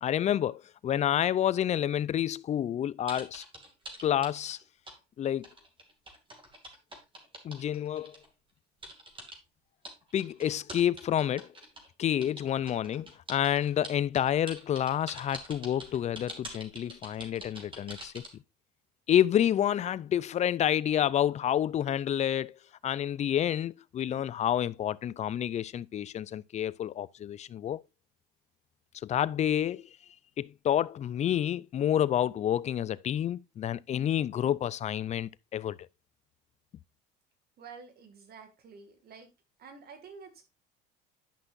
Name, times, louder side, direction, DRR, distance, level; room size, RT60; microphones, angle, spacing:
voice 1, 0.0-3.4 4.0-4.6 5.2-5.5 7.4-8.1 10.1-11.5 12.0-18.2 19.1-27.8 29.0-29.9 30.4-35.8, left 10 dB, 35° left, 0.4 m, -29 dB
sound 1, 3.1-5.0 5.2-8.3 8.8-9.4 9.8-11.9 12.2-18.3, right 1 dB, 25° right, 2.4 m, -45 dB
voice 2, 37.6-39.3 39.6-40.4, right 5 dB, 50° right, 2.1 m, -49 dB
10.5 x 5.7 x 2.5 m
supercardioid pair, 85°, 21 cm